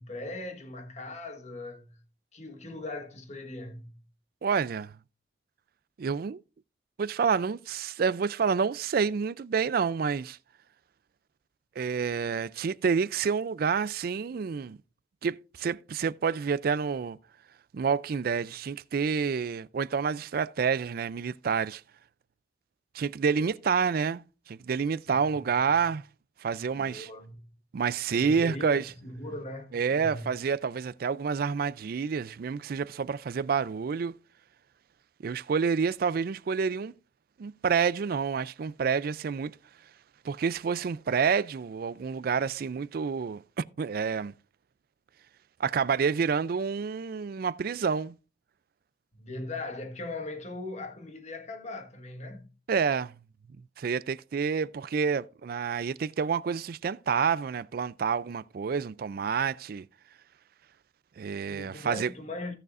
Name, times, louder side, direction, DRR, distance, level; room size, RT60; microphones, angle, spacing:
voice 1, 0.0-2.0 2.3-3.9 25.1-25.6 26.8-27.4 28.1-30.3 49.1-52.5 61.5-62.5, left 2 dB, 40° left, 1.4 m, -39 dB
voice 2, 4.4-4.9 6.0-6.4 7.0-10.4 11.8-14.8 15.2-17.2 17.7-21.8 22.9-26.0 26.4-27.1 27.7-28.9 29.7-34.1 35.2-36.9 37.4-39.6 40.2-44.3 45.6-48.1 52.7-53.1 53.8-59.9 61.2-62.1, right 6 dB, 50° right, 0.4 m, -28 dB
16.5 x 6.6 x 2.5 m
head